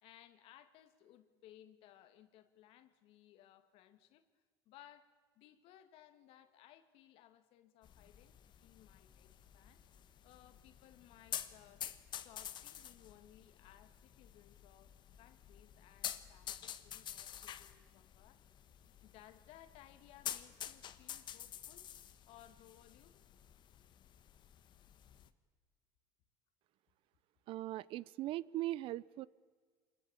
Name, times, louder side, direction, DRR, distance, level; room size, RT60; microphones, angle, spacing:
voice 1, 0.0-18.4 19.0-22.0 22.3-23.2, left 12 dB, 65° left, 10 dB, 1.9 m, -62 dB
sound 1, 7.8-25.3, left 10 dB, 50° left, 1.3 m, -49 dB
voice 2, 27.5-29.3, right 15 dB, 60° right, 21 dB, 0.6 m, -40 dB
25.5 x 21.0 x 8.7 m, 1.5 s
supercardioid pair, 100°, 10 cm